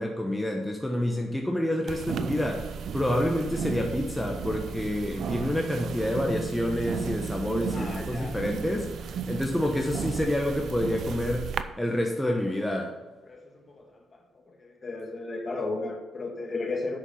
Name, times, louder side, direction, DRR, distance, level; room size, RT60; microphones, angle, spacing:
voice 1, 0.0-8.9 9.3-11.5 11.8-12.9, left 1 dB, 5° left, 1 dB, 1.0 m, -28 dB
sound 1, 1.9-11.6, right 7 dB, 65° right, 0.5 m, -34 dB
voice 2, 7.7-8.4 12.2-12.4 13.2-17.0, left 3 dB, 35° left, 3 dB, 1.7 m, -35 dB
7.7 x 6.4 x 5.6 m, 1.3 s
cardioid pair, 90°, 0 cm